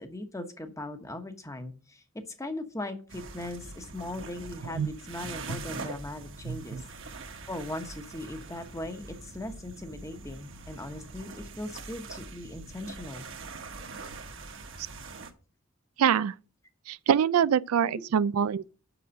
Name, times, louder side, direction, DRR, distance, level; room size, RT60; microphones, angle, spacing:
voice 1, 0.0-2.0 2.4-6.8 7.5-13.3, left 1 dB, 15° left, 1.0 m, -39 dB
sound 1, 3.1-15.3, right 3 dB, 60° right, 1.4 m, -43 dB
voice 2, 6.5-6.8 16.0-16.4 16.9-18.7, right 8 dB, 85° right, 0.4 m, -25 dB
6.9 x 6.4 x 6.4 m
head